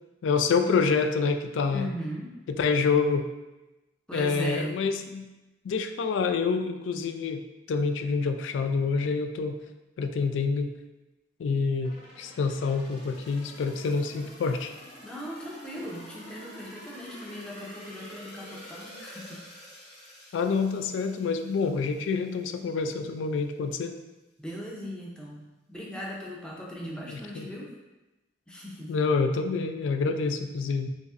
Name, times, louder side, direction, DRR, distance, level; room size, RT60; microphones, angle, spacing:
voice 1, 0.2-1.9 2.5-3.3 4.1-5.2 5.6-7.4 7.7-9.6 10.0-10.7 11.4-14.7 20.3-24.0 27.1-27.5 28.9-30.9, left 4 dB, 80° left, 6 dB, 0.3 m, -27 dB
voice 2, 1.7-2.4 4.1-4.8 15.0-19.5 24.4-25.4 25.7-27.7 28.5-28.9, equal, 5° left, -4 dB, 0.5 m, -38 dB
sound 1, 11.8-22.6 23.0-23.1, equal, 55° left, 1.1 m, -48 dB
5.0 x 2.0 x 2.4 m, 1.1 s
head